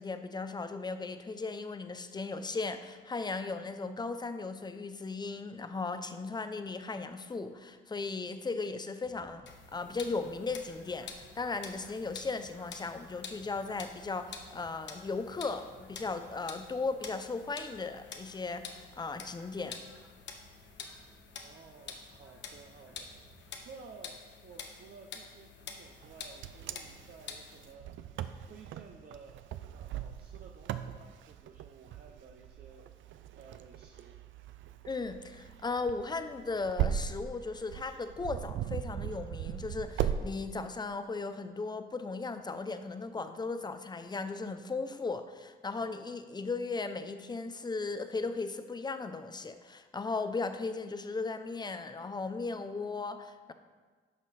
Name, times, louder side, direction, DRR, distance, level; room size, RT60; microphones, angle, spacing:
voice 1, 0.0-19.8 34.8-53.5, left 3 dB, 20° left, 9 dB, 0.7 m, -37 dB
sound 1, 9.0-23.7, right 1 dB, 10° right, 1.3 m, -61 dB
sound 2, 9.5-27.7, left 5 dB, 65° left, 1.1 m, -48 dB
voice 2, 21.4-29.4 29.7-32.8 33.4-34.2, right 5 dB, 50° right, 1 dB, 0.9 m, -54 dB
Wind, 26.0-40.2, right 10 dB, 75° right, 0.5 m, -38 dB
11.0 x 6.0 x 4.2 m, 1.4 s
cardioid pair, 90°, 20 cm